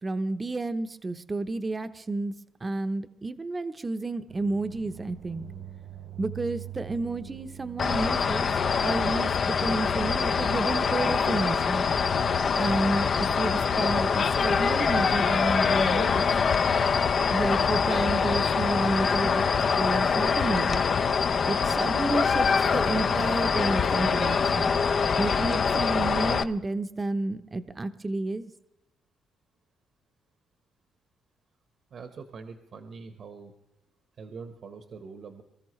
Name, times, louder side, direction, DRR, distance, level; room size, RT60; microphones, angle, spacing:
voice 1, 0.0-2.3 2.6-5.5 6.2-8.5 8.8-11.9 12.5-16.3 17.3-19.4 19.8-20.8 21.5-24.7 25.2-28.5, right 2 dB, 25° right, 10 dB, 0.8 m, -31 dB
sound 1, 4.3-9.4, right 10 dB, 80° right, 2.3 m, -43 dB
sound 2, 7.8-26.4, left 5 dB, 50° left, 0.6 m, -24 dB
voice 2, 31.9-33.5 34.2-35.4, right 5 dB, 60° right, 7 dB, 1.2 m, -43 dB
24.5 x 13.5 x 3.2 m, 0.89 s
cardioid pair, 90°, 0 cm